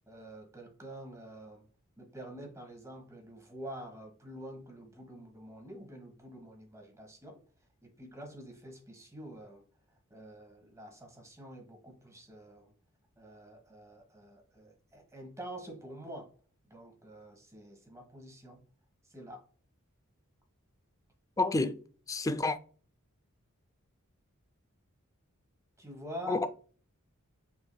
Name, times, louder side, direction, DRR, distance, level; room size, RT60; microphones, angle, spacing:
voice 1, 0.1-1.7 2.0-7.4 7.8-9.6 10.1-12.7 13.2-16.3 16.6-18.6 19.1-19.4 25.8-26.5, equal, 15° right, 1.3 m, -47 dB
voice 2, 21.4-21.8 22.1-22.6 26.3-26.5, left 2 dB, 15° left, 0.4 m, -29 dB
5.9 x 3.5 x 2.2 m
head